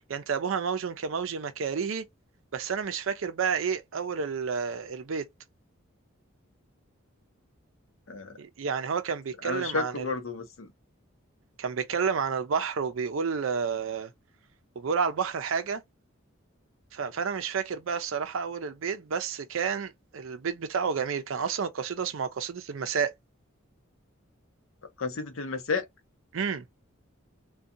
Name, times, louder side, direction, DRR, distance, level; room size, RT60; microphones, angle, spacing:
voice 1, 0.1-2.1 2.5-5.3 8.4-10.1 11.6-14.1 14.8-15.8 16.9-23.1 26.3-26.6, right 6 dB, 70° right, 0.5 m, -30 dB
voice 2, 9.4-10.7 25.0-25.8, left 4 dB, 75° left, 0.7 m, -32 dB
2.7 x 2.2 x 2.4 m
head